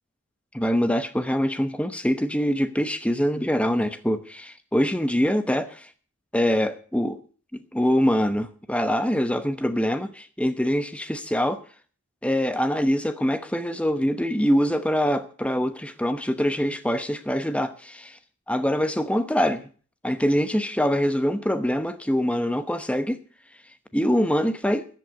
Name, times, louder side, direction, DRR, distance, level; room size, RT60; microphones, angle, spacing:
voice 1, 0.5-5.9 6.3-7.2 7.5-11.6 12.2-18.2 18.5-19.6 20.0-23.2 23.9-24.9, equal, 5° left, 0.9 m, -24 dB
14.0 x 7.8 x 8.2 m
head